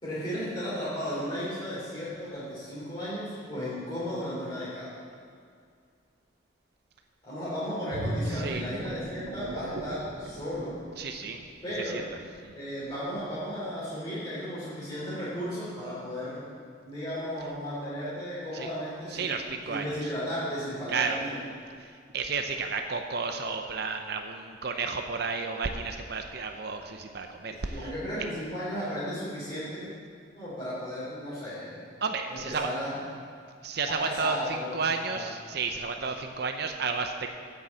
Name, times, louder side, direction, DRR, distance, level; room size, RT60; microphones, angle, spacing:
voice 1, 0.0-4.9 7.2-10.8 11.6-12.0 12.5-16.4 16.8-19.3 19.7-21.5 27.4-29.9 30.4-31.8 32.3-32.9 33.9-34.7 35.1-35.2, equal, 25° left, -12 dB, 3.3 m, -35 dB
sound 1, 7.9-11.5 11.9-12.1, right 1 dB, 80° right, 1.1 m, -36 dB
voice 2, 11.0-11.4 11.8-12.0 12.4-12.6 18.5-18.7 19.1-20.1 20.9-21.2 21.8-27.9 32.0-32.7 33.6-37.3, right 4 dB, 55° right, 5 dB, 0.7 m, -32 dB
9.3 x 7.0 x 7.5 m, 2.2 s
head